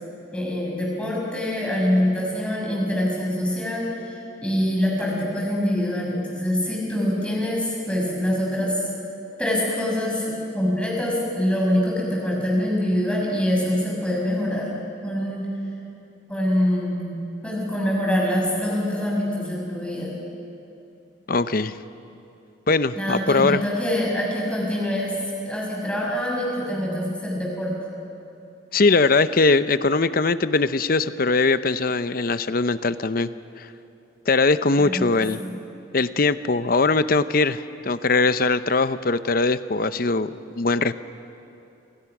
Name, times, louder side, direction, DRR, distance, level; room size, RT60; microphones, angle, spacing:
voice 1, 0.3-8.8 9.4-14.7 15.0-15.5 16.3-17.2 17.4-20.1 23.0-25.2 25.4-27.8 34.8-35.5, left 1 dB, 5° left, -3 dB, 6.4 m, -25 dB
voice 2, 21.3-21.8 22.7-23.6 28.7-33.3 33.6-33.7 34.3-35.4 35.9-40.9, left 3 dB, 50° left, 13 dB, 0.7 m, -21 dB
28.0 x 26.0 x 6.1 m, 2.7 s
head